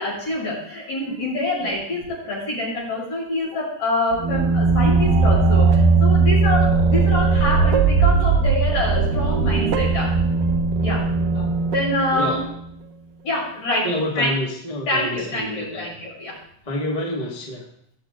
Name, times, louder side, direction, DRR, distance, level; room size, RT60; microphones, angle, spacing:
voice 1, 0.0-10.1 10.8-11.0 11.7-12.4 13.2-13.9 14.2-14.3 14.9-16.4, left 2 dB, 55° left, -6 dB, 7.8 m, -26 dB
voice 2, 1.6-2.0 11.3-11.5 12.1-12.4 13.8-15.9 16.6-17.6, left 1 dB, 15° left, -2 dB, 1.4 m, -28 dB
sound 1, 4.1-12.7, right 4 dB, 80° right, 2.6 m, -18 dB
20.5 x 7.2 x 3.9 m, 0.70 s
omnidirectional pair, 3.9 m